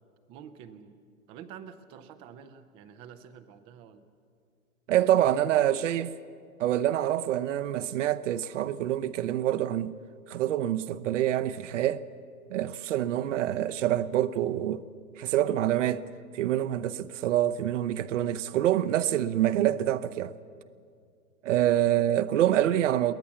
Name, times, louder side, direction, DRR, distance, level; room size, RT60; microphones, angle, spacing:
voice 1, 0.3-1.0 1.3-4.0 13.0-13.2 21.8-22.0, right 8 dB, 15° right, 0.4 m, -48 dB
voice 2, 4.9-6.1 6.6-10.0 10.3-12.0 12.5-14.8 15.2-16.0 16.3-20.3 21.4-23.1, right 12 dB, 55° right, 0.8 m, -26 dB
22.5 x 17.5 x 7.1 m
hypercardioid pair, 135°, 44 cm